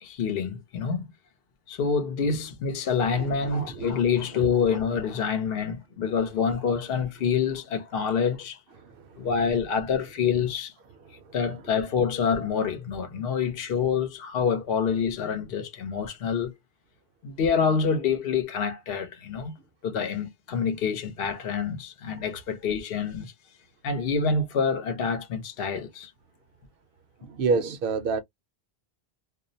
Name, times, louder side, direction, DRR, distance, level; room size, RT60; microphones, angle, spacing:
voice 1, 0.0-1.1 1.7-8.6 9.2-10.7 11.3-16.5 17.2-19.6 19.8-23.3 23.8-26.1, left 6 dB, 70° left, 0.8 m, -27 dB
voice 2, 3.1-4.1 4.3-4.5 8.8-9.3 11.0-11.3 27.2-28.2, right 4 dB, 65° right, 0.7 m, -30 dB
2.3 x 2.0 x 2.6 m
omnidirectional pair, 1.1 m